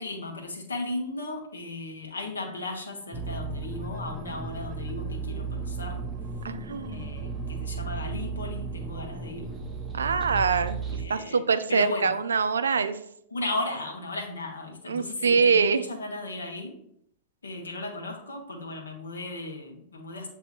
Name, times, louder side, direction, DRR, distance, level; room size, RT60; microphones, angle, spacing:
voice 1, 0.0-6.0 6.9-9.5 10.8-11.4 11.7-12.1 13.3-16.8 17.4-20.3, left 2 dB, 75° left, 1 dB, 1.0 m, -35 dB
sound 1, 3.1-11.0, right 4 dB, 15° right, 0.6 m, -34 dB
voice 2, 6.4-7.1 9.9-10.8 11.1-13.0 14.9-15.8, right 5 dB, 75° right, 11 dB, 0.3 m, -24 dB
7.8 x 2.7 x 2.5 m, 0.71 s
figure-of-eight pair, 95°, 0 cm